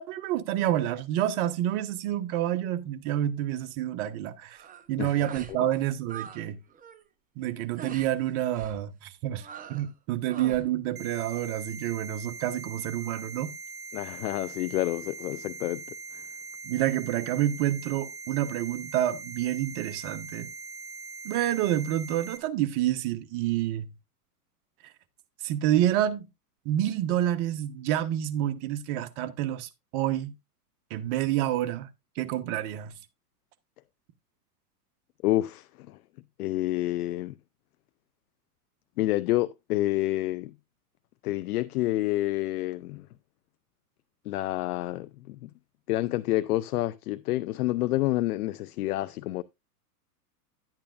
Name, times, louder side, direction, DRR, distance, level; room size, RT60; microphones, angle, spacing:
voice 1, 0.0-4.6 4.9-6.6 7.4-13.5 16.6-20.5 21.2-23.9 25.4-26.3 26.6-30.3 30.9-31.9 32.2-32.9, right 12 dB, 45° right, 1.2 m, -28 dB
sound 1, 4.5-4.9 5.2-5.6 5.8-6.4 6.7-7.0 7.8-8.1 8.5-8.8 9.4-9.9 10.2-10.7, right 8 dB, 15° right, 0.8 m, -43 dB
sound 2, 11.0-22.4, right 3 dB, 75° right, 1.4 m, -42 dB
voice 2, 13.9-15.8 16.1-16.2 35.2-36.0 36.4-37.4 39.0-40.5 41.2-43.1 44.3-45.5 45.9-49.4, left 16 dB, 70° left, 0.6 m, -28 dB
11.5 x 8.9 x 2.5 m
hypercardioid pair, 115°, 48 cm